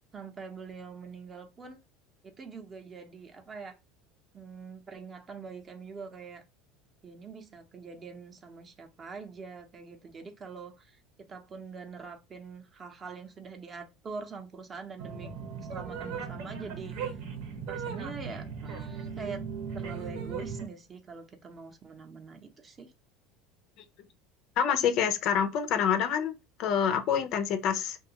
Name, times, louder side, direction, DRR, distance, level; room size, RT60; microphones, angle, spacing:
voice 1, 0.1-1.8 2.2-3.8 4.3-6.4 7.0-15.3 15.7-17.2 17.7-19.5 19.7-22.9, right 5 dB, 30° right, 0.6 m, -44 dB
sound 1, 15.0-20.7, right 6 dB, 75° right, 0.8 m, -37 dB
voice 2, 24.6-26.3 26.6-28.0, left 8 dB, 55° left, 0.5 m, -26 dB
2.6 x 2.3 x 2.8 m
supercardioid pair, 125°, 0 cm